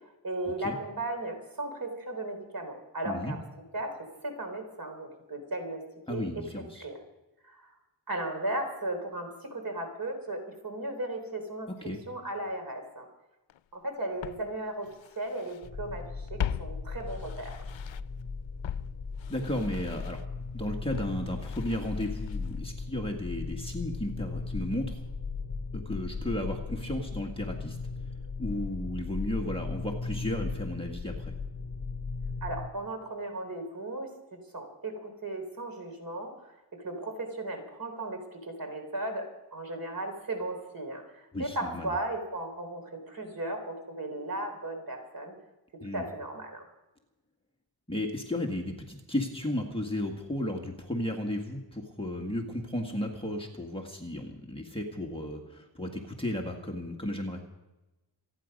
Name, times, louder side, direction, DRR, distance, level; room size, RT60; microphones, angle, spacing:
voice 1, 0.2-3.4 3.7-5.8 6.1-6.2 6.8-6.9 7.4-7.7 8.1-11.7 12.1-13.1 13.7-14.9 15.2-17.6 32.4-34.1 34.5-36.3 36.8-45.3 45.9-46.7, right 1 dB, 50° right, 4 dB, 3.5 m, -36 dB
voice 2, 6.1-6.8 11.8-12.0 19.3-20.2 20.5-25.0 25.7-27.8 28.4-31.3 41.3-41.9 45.8-46.0 47.9-57.4, left 1 dB, 10° left, 0 dB, 1.6 m, -34 dB
Walk footsteps, 13.5-13.6 14.2-15.7 16.0-18.2 18.6-22.7 22.9-23.0, left 9 dB, 90° left, 0.6 m, -40 dB
sound 1, 15.6-32.7, left 4 dB, 40° left, 1.9 m, -37 dB
27.0 x 9.6 x 5.2 m, 1.0 s
wide cardioid pair, 160°, 45 cm